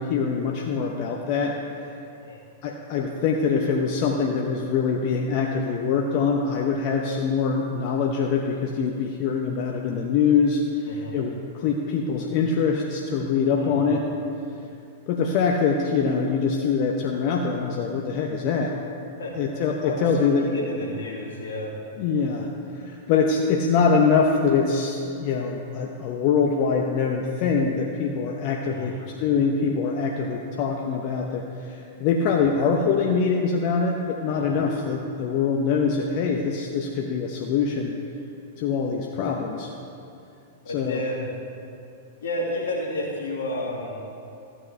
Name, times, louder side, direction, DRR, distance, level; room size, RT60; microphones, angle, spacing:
voice 1, 0.0-1.5 2.6-14.0 15.1-18.7 19.4-20.5 22.0-22.5 22.7-37.9 38.6-39.7 40.7-41.0, left 5 dB, 50° left, 1 dB, 0.8 m, -24 dB
voice 2, 10.9-11.2 13.6-13.9 19.2-19.3 19.8-20.0 20.4-21.7 28.6-29.0 34.3-34.6 39.1-39.3 40.6-41.2 42.2-44.0, left 1 dB, 75° left, -2 dB, 2.2 m, -32 dB
14.5 x 8.6 x 3.4 m, 2.6 s
hypercardioid pair, 105°, 0 cm